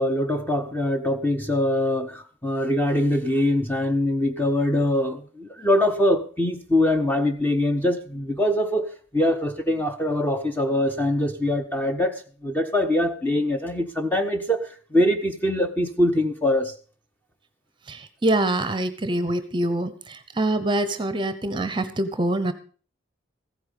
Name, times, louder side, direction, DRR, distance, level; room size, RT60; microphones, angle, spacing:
voice 1, 0.0-16.7, left 1 dB, 10° left, 0.8 m, -23 dB
voice 2, 17.9-22.5, right 1 dB, 25° right, 0.8 m, -25 dB
15.0 x 8.7 x 5.2 m
head